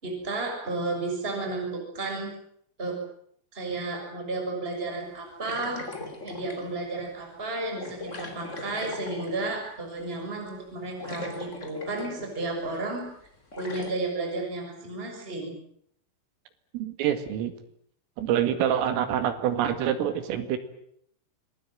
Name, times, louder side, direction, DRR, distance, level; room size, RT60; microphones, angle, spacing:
voice 1, 0.0-2.3 2.8-3.0 3.5-5.8 6.2-13.1 13.6-15.6, right 2 dB, 10° right, 2 dB, 6.3 m, -32 dB
sound 1, 5.4-6.7 7.8-9.7 10.7-10.8 11.0-12.4 12.7-12.8 13.5-13.9, left 2 dB, 20° left, 2.7 m, -39 dB
voice 2, 16.7-17.5 18.2-20.6, right 10 dB, 80° right, 9 dB, 4.7 m, -26 dB
26.5 x 20.0 x 9.2 m, 0.68 s
omnidirectional pair, 5.8 m